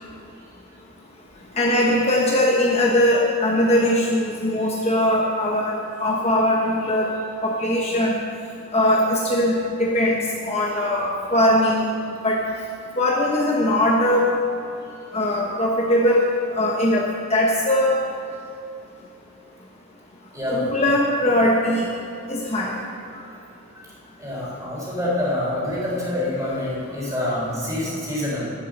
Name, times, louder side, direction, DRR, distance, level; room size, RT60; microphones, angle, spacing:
voice 1, 1.6-7.1 7.4-8.2 8.7-10.2 10.4-11.8 12.2-12.4 13.0-14.3 15.1-16.2 16.5-18.0 20.5-21.9 22.3-22.7, left 1 dB, 30° left, -2 dB, 1.1 m, -20 dB
voice 2, 20.3-20.7 23.7-23.9 24.2-28.5, left 1 dB, 15° right, -5 dB, 4.0 m, -26 dB
11.5 x 11.5 x 6.6 m, 2.7 s
head